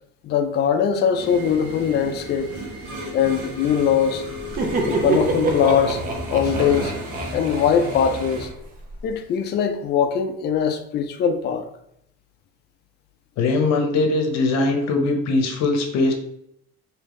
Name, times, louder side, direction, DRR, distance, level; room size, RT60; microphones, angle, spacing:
voice 1, 0.2-2.5 3.1-4.2 4.8-6.0 6.3-6.9 7.3-8.5 9.0-11.7, left 7 dB, 35° left, 6 dB, 0.4 m, -21 dB
sound 1, 1.2-8.5, equal, 75° right, 1.1 m, -34 dB
sound 2, 4.2-10.0, right 2 dB, 50° right, 1.1 m, -41 dB
Laughter, 4.3-9.0, right 3 dB, 30° right, 0.5 m, -27 dB
voice 2, 13.4-16.1, left 3 dB, 60° left, 5 dB, 0.8 m, -21 dB
3.4 x 2.7 x 3.7 m, 0.75 s
cardioid pair, 160°, 31 cm